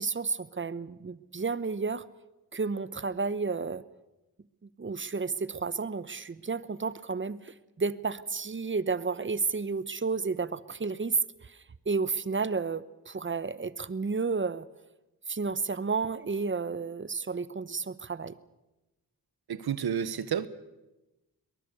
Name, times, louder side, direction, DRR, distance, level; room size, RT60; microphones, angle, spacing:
voice 1, 0.0-2.1 2.5-3.8 4.8-11.6 11.9-14.7 15.3-18.3, right 4 dB, 30° right, 0.9 m, -31 dB
voice 2, 19.5-20.5, right 8 dB, 80° right, 1.2 m, -30 dB
22.5 x 20.0 x 6.8 m
cardioid pair, 70°, 37 cm